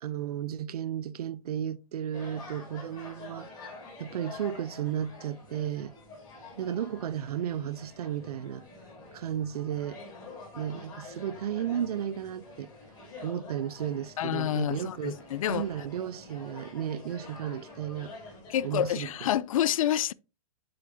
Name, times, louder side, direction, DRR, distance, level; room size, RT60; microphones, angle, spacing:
voice 1, 0.0-3.5 4.0-5.9 6.6-8.6 9.1-10.0 10.5-12.7 13.2-15.2 15.5-18.1 18.6-19.1, right 9 dB, 80° right, 0.6 m, -34 dB
sound 1, 2.1-19.3, left 2 dB, 20° left, 4.0 m, -47 dB
voice 2, 14.2-15.7 18.5-20.1, left 11 dB, 65° left, 0.4 m, -28 dB
7.9 x 7.1 x 2.7 m
hypercardioid pair, 160°, 19 cm